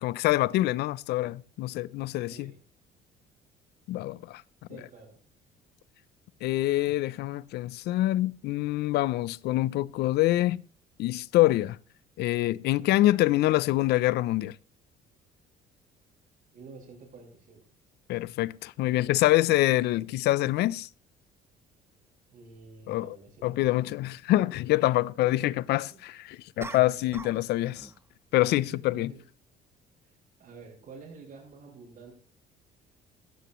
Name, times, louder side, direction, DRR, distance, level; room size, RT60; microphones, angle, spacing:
voice 1, 0.0-2.5 3.9-4.4 6.4-10.6 11.0-11.8 12.2-14.6 18.1-20.9 22.9-23.1 23.4-27.9 28.3-29.1, left 16 dB, 80° left, 0.6 m, -25 dB
voice 2, 2.3-2.6 4.7-5.2 16.5-17.6 22.3-23.9 25.2-26.0 27.0-27.3 28.6-29.2 30.0-30.1 30.4-32.1, right 4 dB, 60° right, 6.3 m, -49 dB
sound 1, 22.5-22.7 26.6-27.5 27.7-28.1, right 3 dB, 15° right, 0.6 m, -42 dB
16.0 x 14.0 x 3.1 m
cardioid pair, 110°, 17 cm